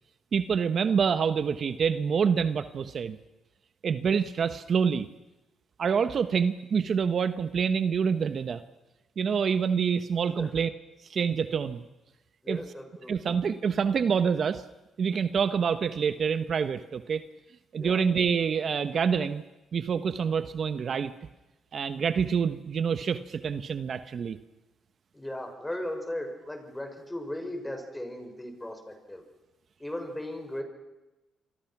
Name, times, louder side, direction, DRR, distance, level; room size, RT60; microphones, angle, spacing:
voice 1, 0.3-3.2 3.8-5.1 5.8-8.6 9.2-10.7 11.1-11.8 12.5-12.6 13.1-14.6 15.0-17.2 17.7-19.4 19.7-21.1 21.7-24.4, right 6 dB, 50° right, 11 dB, 1.1 m, -26 dB
voice 2, 12.4-13.3 17.8-18.0 25.1-29.2 29.8-30.6, left 1 dB, 10° left, 5 dB, 6.4 m, -37 dB
28.0 x 24.0 x 6.1 m, 1.1 s
cardioid pair, 90°, 0 cm